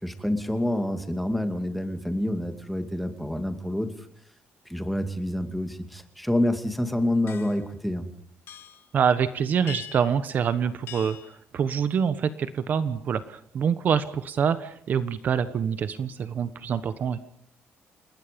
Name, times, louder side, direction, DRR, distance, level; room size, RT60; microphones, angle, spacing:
voice 1, 0.0-3.9 4.7-8.1, left 1 dB, ahead, 7 dB, 2.5 m, -27 dB
sound 1, 7.3-7.7 8.5-8.9 9.7-10.2 10.9-11.3, left 11 dB, 60° left, 2.0 m, -42 dB
voice 2, 8.9-17.2, right 7 dB, 45° right, 13 dB, 1.2 m, -26 dB
29.5 x 20.0 x 5.3 m, 0.67 s
cardioid pair, 160°, 4 cm